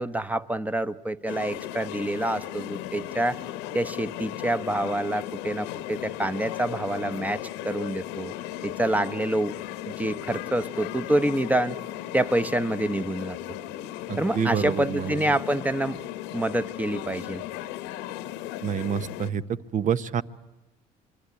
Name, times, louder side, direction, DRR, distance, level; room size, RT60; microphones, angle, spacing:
voice 1, 0.0-3.4 3.7-8.3 8.6-9.5 9.9-11.8 12.1-13.4 14.2-16.0 16.3-17.4, right 1 dB, 10° right, 10 dB, 1.0 m, -27 dB
sound 1, 1.3-19.3, left 13 dB, 90° left, 1.1 m, -36 dB
voice 2, 14.1-15.3 18.6-20.2, right 8 dB, 45° right, 15 dB, 1.0 m, -28 dB
27.0 x 22.5 x 9.6 m, 1.0 s
supercardioid pair, 85°, 17 cm